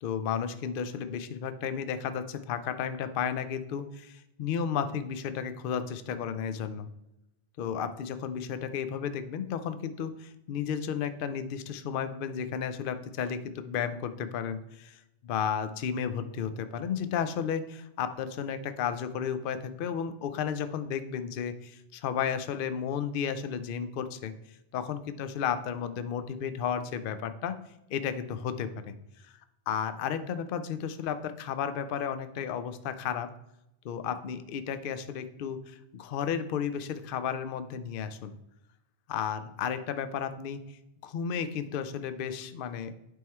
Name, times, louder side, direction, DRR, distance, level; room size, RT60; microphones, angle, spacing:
voice 1, 0.0-6.9 7.6-27.6 27.9-28.9 29.7-33.3 33.8-38.3 39.1-42.9, left 7 dB, 60° left, 11 dB, 0.7 m, -33 dB
9.3 x 3.7 x 4.4 m, 0.87 s
omnidirectional pair, 1.2 m